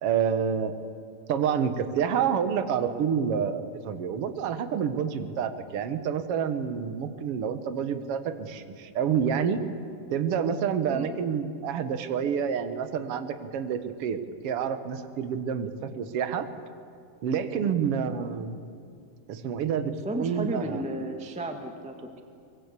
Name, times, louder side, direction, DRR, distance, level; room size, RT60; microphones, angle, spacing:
voice 1, 0.0-0.8 1.3-9.6 10.1-14.2 14.4-16.5 17.2-18.6 19.3-20.8, right 7 dB, 60° right, 10 dB, 1.6 m, -28 dB
voice 2, 20.0-22.2, right 1 dB, 5° right, 4 dB, 0.7 m, -34 dB
23.5 x 22.0 x 8.4 m, 2.4 s
omnidirectional pair, 4.1 m